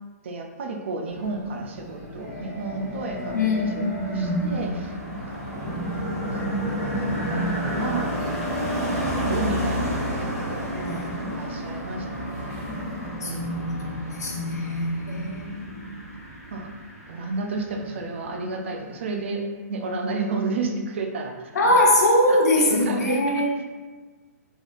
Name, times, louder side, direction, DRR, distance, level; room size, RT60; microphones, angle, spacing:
voice 1, 0.2-3.7 4.1-5.9 6.3-8.1 8.9-10.7 11.2-12.8 13.2-13.8 16.5-16.7 17.1-21.9 22.3-23.6, right 3 dB, 45° right, 3 dB, 0.5 m, -32 dB
sound 1, 1.1-13.1, equal, 30° right, 1.5 m, -33 dB
Car passing by, 3.1-17.9 18.2-18.5, equal, 5° right, 1.0 m, -32 dB
voice 2, 3.3-4.5 5.6-5.8 10.7-11.4 11.7-11.8 13.2-13.8 14.1-16.0 21.5-23.5, left 1 dB, 75° left, -2 dB, 1.1 m, -23 dB
3.9 x 3.5 x 2.5 m, 1.4 s
hypercardioid pair, 175°, 9 cm